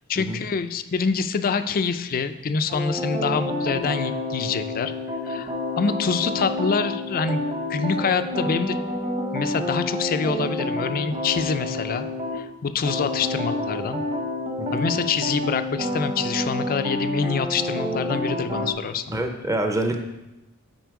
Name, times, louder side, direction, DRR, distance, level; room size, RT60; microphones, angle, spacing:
voice 1, 0.1-4.9 5.2-7.4 7.7-8.8 9.3-12.1 12.3-14.0 14.7-19.0, left 5 dB, 40° left, 10 dB, 0.4 m, -26 dB
sound 1, 2.7-12.4 12.8-18.7, left 1 dB, 30° right, 1.0 m, -28 dB
voice 2, 19.1-20.0, right 1 dB, 15° right, 5 dB, 0.6 m, -26 dB
7.9 x 4.4 x 4.7 m, 0.97 s
head